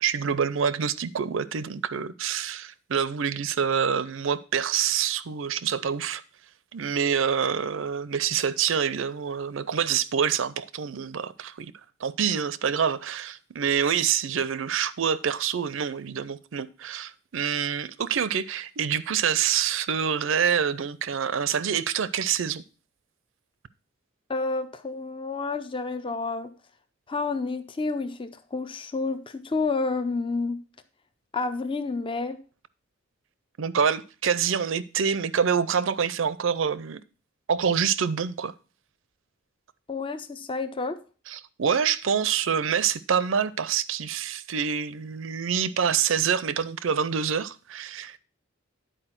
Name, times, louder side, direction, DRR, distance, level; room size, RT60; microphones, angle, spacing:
voice 1, 0.0-6.2 6.7-11.7 12.0-22.6 33.6-37.0 37.5-38.5 41.3-48.2, right 7 dB, 70° right, 0.5 m, -26 dB
voice 2, 24.3-26.5 27.1-30.6 31.3-32.4 39.9-41.0, left 3 dB, 25° left, 0.6 m, -29 dB
10.0 x 4.6 x 5.8 m
head